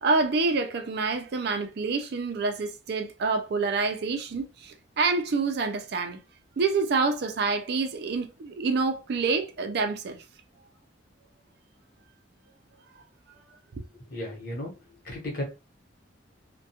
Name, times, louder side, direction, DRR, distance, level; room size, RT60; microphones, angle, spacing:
voice 1, 0.0-6.2 6.6-10.2, right 4 dB, 55° right, 0.4 m, -27 dB
voice 2, 14.1-14.7 15.0-15.4, left 1 dB, 50° left, 0.9 m, -34 dB
2.3 x 2.2 x 2.8 m
head